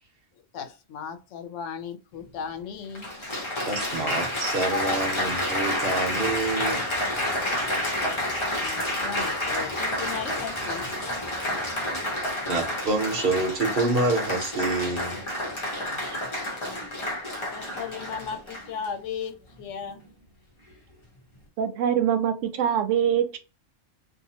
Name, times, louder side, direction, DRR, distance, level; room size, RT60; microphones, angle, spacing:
voice 1, 0.5-3.1 8.6-10.9 16.1-16.2 17.5-20.0, left 7 dB, 80° left, 1.0 m, -36 dB
Applause, 2.2-2.3 2.9-18.9 19.6-19.9, left 1 dB, 30° left, 0.8 m, -29 dB
voice 2, 3.6-6.8 12.4-15.2 16.0-16.2, right 2 dB, 55° right, 1.0 m, -27 dB
sound 1, 4.8-12.1, equal, 10° right, 1.0 m, -44 dB
voice 3, 21.6-23.4, right 9 dB, 85° right, 0.9 m, -24 dB
2.7 x 2.5 x 2.8 m
omnidirectional pair, 1.3 m